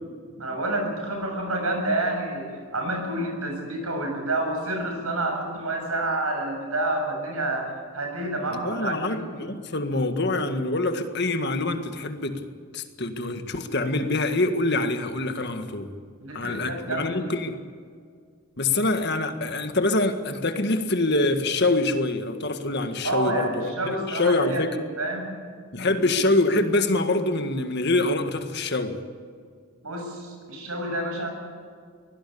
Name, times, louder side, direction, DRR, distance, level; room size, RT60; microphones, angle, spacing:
voice 1, 0.4-9.4 16.2-17.4 23.0-25.4 26.0-26.2 29.8-31.3, right 1 dB, 80° right, 3 dB, 7.1 m, -29 dB
voice 2, 8.6-12.4 12.7-15.9 16.3-17.5 18.6-24.8 25.7-29.0, left 2 dB, 50° left, 7 dB, 1.8 m, -25 dB
23.5 x 17.5 x 8.6 m, 2.1 s
head